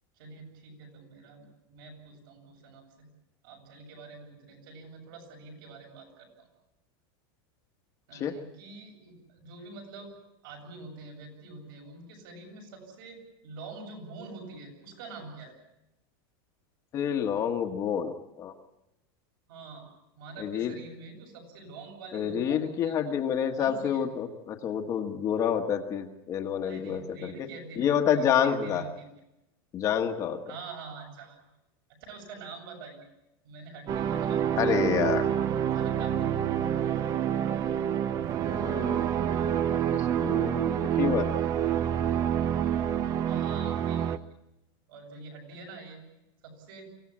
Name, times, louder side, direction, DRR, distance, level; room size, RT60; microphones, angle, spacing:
voice 1, 0.2-3.1 3.4-6.5 8.1-10.1 10.4-15.6 19.5-19.9 20.2-23.2 23.5-24.0 26.6-29.1 30.5-31.4 32.0-33.1 33.4-34.7 35.7-36.4 43.2-44.2 44.9-46.0 46.4-46.9, right 3 dB, 65° right, 2 dB, 7.6 m, -45 dB
voice 2, 16.9-18.5 20.4-20.7 22.1-27.5 27.8-28.8 29.7-30.4 34.6-35.3 38.5-39.0 39.9-41.3, left 8 dB, 25° left, 5 dB, 1.3 m, -28 dB
sound 1, 33.9-44.2, right 9 dB, 25° right, 0.7 m, -27 dB
24.0 x 16.5 x 8.6 m, 0.90 s
supercardioid pair, 170°, 12 cm